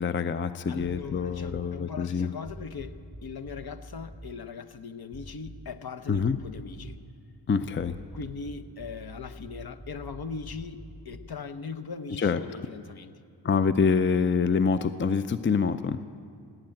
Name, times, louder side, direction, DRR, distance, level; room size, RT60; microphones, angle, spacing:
voice 1, 0.0-2.3 6.1-6.4 7.5-8.0 12.1-12.4 13.4-16.0, left 5 dB, 25° left, 12 dB, 0.5 m, -26 dB
voice 2, 0.7-7.0 8.1-13.1, left 5 dB, 55° left, 9 dB, 0.9 m, -40 dB
sound 1, 0.8-1.8 2.4-4.3 5.1-5.8 6.1-7.1 7.7-11.4, equal, 5° left, 0.9 m, -46 dB
17.5 x 8.7 x 9.0 m, 2.5 s
cardioid pair, 60°, 43 cm